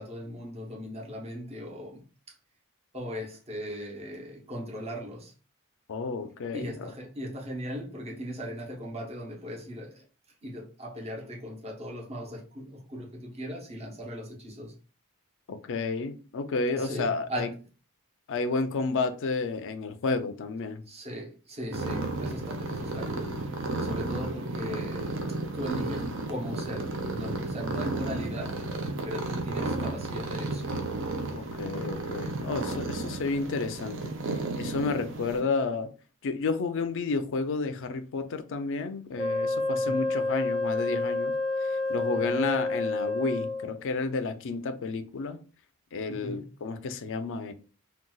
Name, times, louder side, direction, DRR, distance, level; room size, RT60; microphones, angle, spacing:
voice 1, 0.0-2.3 2.9-5.3 6.5-10.0 10.4-14.7 16.7-17.5 20.8-25.2 25.5-28.6 29.0-30.9 39.8-40.1 42.1-42.5 46.1-46.4, equal, 30° right, 0.8 m, -38 dB
voice 2, 5.9-6.9 15.5-17.5 18.3-20.8 31.3-34.2 34.6-35.9 36.2-41.3 41.6-45.4 45.9-47.5, left 4 dB, 60° left, 0.4 m, -31 dB
sound 1, 21.7-35.4, right 2 dB, 60° right, 0.6 m, -33 dB
Wind instrument woodwind instrument, 39.2-43.8, left 2 dB, 5° left, 0.8 m, -29 dB
3.8 x 2.3 x 2.3 m
head